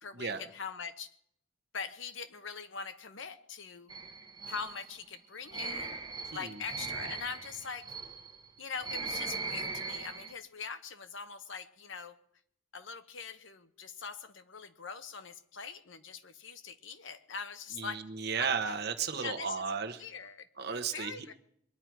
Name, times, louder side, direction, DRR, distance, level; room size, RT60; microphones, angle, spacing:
voice 1, 0.0-1.1 1.7-3.9 4.5-6.0 6.3-7.9 8.6-12.2 12.7-18.0 18.4-18.5 19.2-19.6 19.9-20.5 20.7-21.3, left 5 dB, 65° left, 10 dB, 1.0 m, -42 dB
sound 1, 3.9-10.3, right 4 dB, 20° right, 0.7 m, -40 dB
voice 2, 17.8-20.0 20.6-21.1, right 6 dB, 50° right, 6 dB, 1.0 m, -34 dB
22.0 x 10.5 x 4.6 m, 0.68 s
head